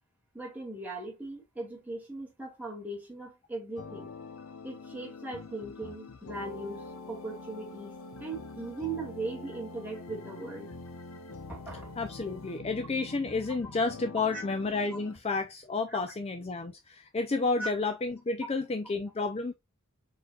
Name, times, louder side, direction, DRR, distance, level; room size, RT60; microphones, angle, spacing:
voice 1, 0.3-4.1 4.6-10.7 11.5-11.9 13.6-13.7 14.3-14.4 17.6-17.7, right 2 dB, 10° right, 2.1 m, -39 dB
sound 1, 3.8-15.1, left 4 dB, 80° left, 0.7 m, -45 dB
sound 2, 6.3-12.6, equal, 60° left, 1.1 m, -51 dB
voice 2, 12.0-19.5, left 3 dB, 25° left, 0.4 m, -31 dB
4.9 x 4.4 x 2.3 m
head